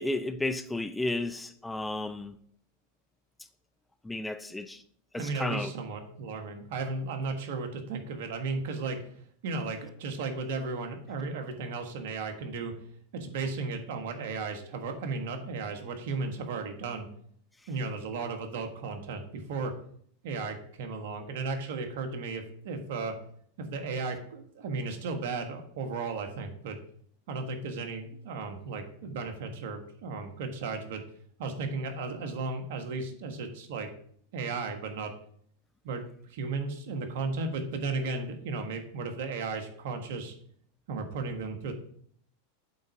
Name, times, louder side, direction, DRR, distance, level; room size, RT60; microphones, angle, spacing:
voice 1, 0.0-2.4 4.0-4.8 5.1-5.7, left 2 dB, 10° left, 0.4 m, -33 dB
voice 2, 5.2-9.0 9.4-12.7 13.1-17.1 17.7-19.7 20.2-23.1 23.6-26.8 27.3-31.0 31.4-33.9 34.3-35.1 35.8-36.0 36.3-40.3 40.9-41.7, right 3 dB, 65° right, 1.4 m, -35 dB
8.5 x 4.0 x 4.9 m
hypercardioid pair, 110°, 0 cm